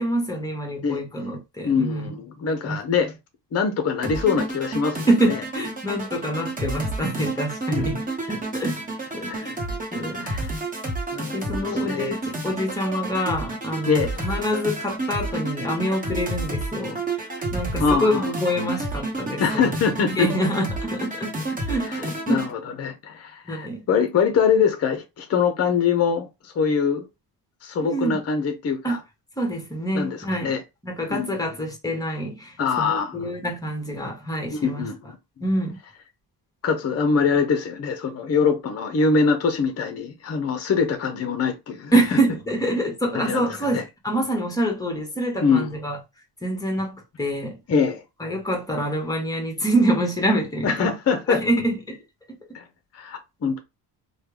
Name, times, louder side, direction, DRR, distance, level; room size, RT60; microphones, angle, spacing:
voice 1, 0.0-2.1 2.7-2.8 5.1-8.8 9.1-9.6 9.9-10.3 11.3-17.0 17.5-19.7 20.1-22.4 23.5-23.8 27.8-28.2 28.8-29.0 29.4-30.5 30.8-34.9 35.4-35.8 41.9-46.0 46.4-47.6 48.2-50.8 51.3-52.0, right 1 dB, 10° left, 1.1 m, -26 dB
voice 2, 1.6-3.1 3.5-5.4 7.7-8.0 9.3-9.4 10.2-10.5 11.1-12.2 13.9-14.1 17.8-18.3 19.4-20.4 21.8-27.1 27.6-29.0 29.9-30.6 31.1-31.4 32.6-33.2 34.5-35.2 36.6-42.0 43.1-43.5 43.7-43.8 45.4-45.8 47.7-48.0 50.6-51.4 52.5-52.6 52.9-53.6, left 5 dB, 35° left, 0.6 m, -23 dB
sound 1, 4.0-22.5, right 2 dB, 20° right, 1.0 m, -30 dB
3.3 x 2.2 x 3.1 m
cardioid pair, 115°, 42 cm